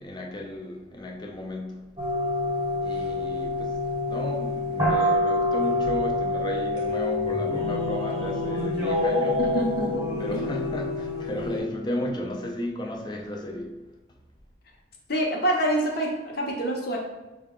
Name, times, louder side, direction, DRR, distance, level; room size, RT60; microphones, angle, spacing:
voice 1, 0.0-1.9 2.8-3.8 4.1-9.4 10.2-13.8, left 1 dB, 25° left, 0.4 m, -34 dB
sound 1, 2.0-11.6, left 2 dB, 25° right, 1.0 m, -26 dB
voice 2, 9.4-10.5 15.1-17.0, right 1 dB, 50° left, 0.8 m, -27 dB
5.7 x 2.2 x 3.6 m
head